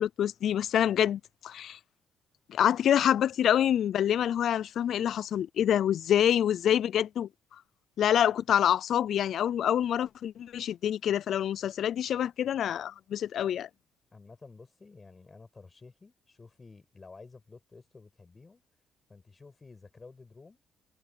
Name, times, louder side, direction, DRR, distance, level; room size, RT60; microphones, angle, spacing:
voice 1, 0.0-1.8 2.5-7.3 8.0-13.7, left 10 dB, 70° left, 0.3 m, -26 dB
voice 2, 14.1-18.6 19.1-20.6, left 4 dB, 30° left, 6.6 m, -52 dB
cardioid pair, 90°, 0 cm